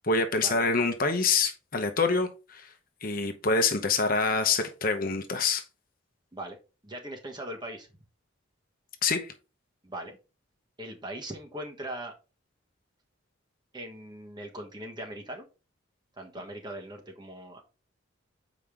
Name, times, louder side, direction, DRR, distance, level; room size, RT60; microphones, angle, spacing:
voice 1, 0.0-2.7 3.0-5.7 9.0-9.3, left 4 dB, 45° left, 0.9 m, -26 dB
voice 2, 6.8-7.9 9.8-10.2 10.8-12.1 13.7-15.5 16.2-17.6, right 1 dB, 20° right, 1.3 m, -40 dB
7.5 x 5.0 x 3.6 m
head